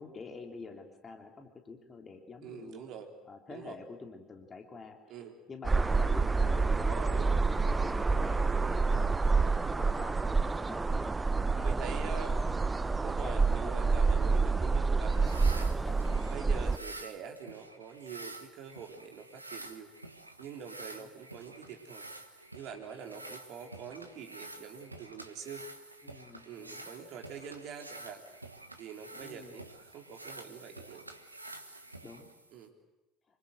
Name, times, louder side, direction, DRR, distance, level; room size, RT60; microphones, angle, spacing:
voice 1, 0.0-2.8 3.3-5.0 5.5-9.2 9.7-10.2 10.5-11.2 11.6-12.8 13.2-14.2 15.8-16.2 21.0-21.1 23.1-23.3 26.0-26.9 29.2-29.5 32.0-32.3, left 4 dB, 30° left, 4 dB, 3.4 m, -48 dB
voice 2, 2.4-3.1 3.5-3.7 5.1-5.4 6.9-7.3 9.4-9.7 11.6-12.4 13.0-15.7 16.3-19.9 20.4-22.1 22.5-25.6 26.4-28.2 28.8-31.1 32.5-32.7, right 7 dB, 55° right, 3 dB, 3.8 m, -45 dB
sound 1, 5.6-16.8, right 4 dB, 20° right, 0.8 m, -28 dB
sound 2, 15.1-32.7, right 2 dB, 90° right, 1.3 m, -49 dB
27.0 x 24.5 x 7.9 m, 1.0 s
figure-of-eight pair, 60°, 0 cm